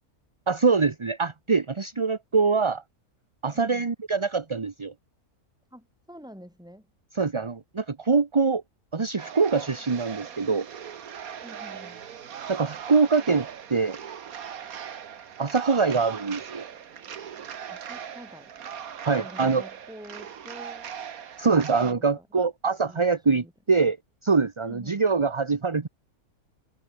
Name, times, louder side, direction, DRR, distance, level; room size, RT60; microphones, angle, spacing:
voice 1, 0.5-2.8 3.4-4.9 7.2-8.6 8.9-10.7 12.5-14.0 15.4-16.6 19.0-19.6 21.4-24.0 24.2-25.9, right 4 dB, 25° right, 0.8 m, -24 dB
voice 2, 3.5-3.9 5.7-6.9 11.4-12.0 17.7-18.5 19.1-20.9 21.8-22.3 22.8-23.5 24.6-25.0, equal, 5° right, 5.3 m, -47 dB
sound 1, 9.2-21.9, right 8 dB, 70° right, 1.7 m, -39 dB
omnidirectional pair, 1.5 m